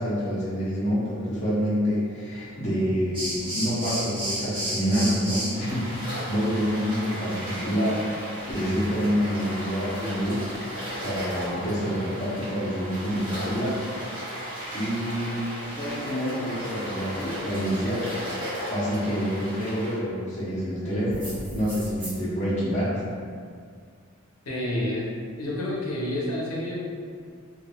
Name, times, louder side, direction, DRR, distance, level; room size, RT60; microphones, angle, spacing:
voice 1, 0.0-8.0 8.5-10.4 11.0-13.8 14.3-14.5 14.7-18.0 18.3-23.0, equal, 30° left, -9 dB, 0.6 m, -27 dB
sound 1, 3.1-20.0 21.1-22.1, equal, 20° right, 0.7 m, -34 dB
voice 2, 24.5-25.0 25.4-26.8, left 1 dB, 85° left, -5 dB, 0.6 m, -29 dB
2.9 x 2.3 x 2.2 m, 2.1 s
head